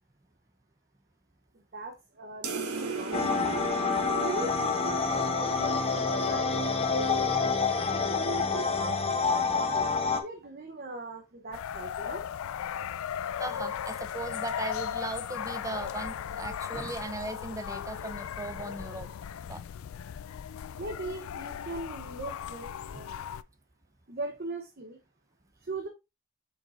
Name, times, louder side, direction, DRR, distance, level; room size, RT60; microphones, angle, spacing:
voice 1, 1.5-3.6 4.0-7.5 7.9-9.9 10.2-12.2 20.8-23.2 24.1-25.0 25.6-25.9, right 2 dB, 45° right, 0.8 m, -40 dB
sound 1, 2.4-7.3, right 4 dB, 85° right, 1.6 m, -37 dB
sound 2, 3.1-10.2, left 4 dB, 25° left, 0.8 m, -27 dB
sound 3, 11.5-23.4, left 9 dB, 70° left, 0.3 m, -37 dB
voice 2, 13.4-19.1 19.5-19.6, right 2 dB, 15° right, 0.6 m, -38 dB
7.2 x 5.1 x 2.6 m
head